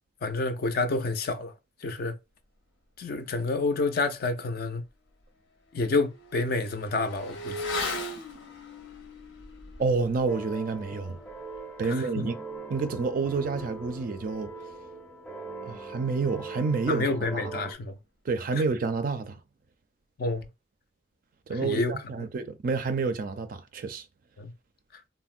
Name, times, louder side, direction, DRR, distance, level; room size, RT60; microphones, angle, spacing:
voice 1, 0.2-1.5 1.8-2.2 3.0-4.8 5.7-7.6 11.8-12.3 16.9-17.9 20.2-20.5 21.6-21.9 24.4-24.5, left 3 dB, 55° left, 0.4 m, -28 dB
Motorcycle / Accelerating revving vroom, 4.6-4.7 5.1-15.1 15.4-15.5, left 2 dB, 85° left, 0.7 m, -40 dB
voice 2, 9.8-11.2 11.8-12.3 12.7-14.6 15.6-17.1 17.3-17.7 18.3-19.4 21.5-24.1, right 4 dB, 50° right, 0.4 m, -29 dB
sound 1, 10.3-17.7, right 3 dB, 10° left, 0.6 m, -41 dB
3.5 x 2.0 x 2.4 m
head